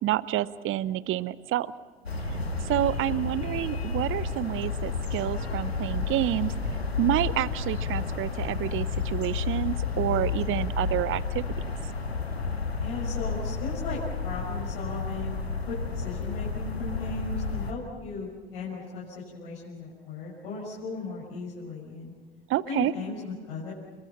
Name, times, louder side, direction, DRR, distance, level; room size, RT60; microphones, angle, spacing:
voice 1, 0.0-1.7 2.6-6.5 7.0-11.6 22.5-22.9, right 14 dB, 45° right, 19 dB, 0.8 m, -28 dB
sound 1, 2.1-17.7, left 4 dB, 85° left, 2.0 m, -31 dB
voice 2, 12.8-19.0 19.3-22.1 22.6-23.7, left 3 dB, 70° left, -6 dB, 6.4 m, -37 dB
29.5 x 23.0 x 5.7 m, 1.5 s
figure-of-eight pair, 60°, 30 cm